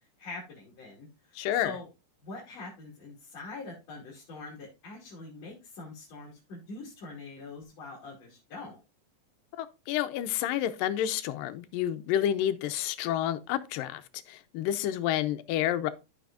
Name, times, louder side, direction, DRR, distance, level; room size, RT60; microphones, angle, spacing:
voice 1, 0.2-1.9 2.2-8.8, left 3 dB, 50° left, 3.5 m, -44 dB
voice 2, 1.4-1.7 9.5-14.0 14.3-15.9, left 11 dB, 85° left, 2.4 m, -29 dB
13.5 x 5.5 x 2.5 m
omnidirectional pair, 3.9 m